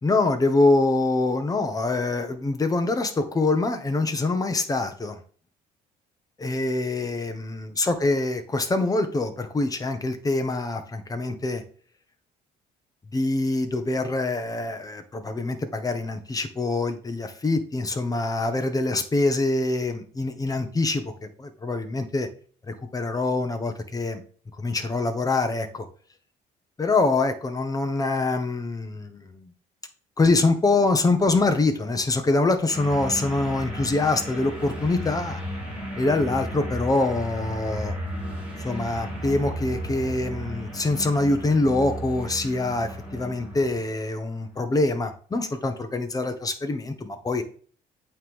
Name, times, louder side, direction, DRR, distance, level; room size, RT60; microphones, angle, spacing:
voice 1, 0.0-5.2 6.4-11.6 13.1-22.3 22.7-24.2 24.6-25.9 26.8-29.5 30.2-35.4 36.0-37.9 38.6-47.4, left 2 dB, 20° left, 1.1 m, -25 dB
sound 1, 32.7-44.1, equal, 5° right, 2.6 m, -34 dB
8.6 x 3.3 x 3.7 m
cardioid pair, 110°, 17 cm